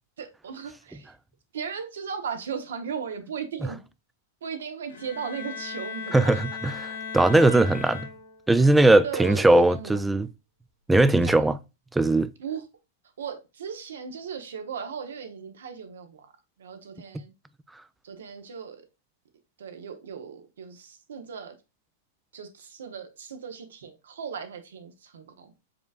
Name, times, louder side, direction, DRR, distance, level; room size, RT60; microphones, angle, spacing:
voice 1, 0.2-1.1 1.5-3.8 4.4-6.4 7.4-7.8 9.0-10.0 11.2-11.5 12.4-12.6 13.2-16.3 16.6-17.3 18.0-18.8 19.6-21.5 22.3-25.7, right 6 dB, 80° right, 1.0 m, -37 dB
Bowed string instrument, 4.9-8.6, left 6 dB, 80° left, 1.3 m, -37 dB
voice 2, 6.1-6.7 7.1-8.0 8.5-10.3 10.9-11.6 11.9-12.3, right 2 dB, 5° right, 0.3 m, -19 dB
5.0 x 3.5 x 2.4 m
hypercardioid pair, 130°, 0 cm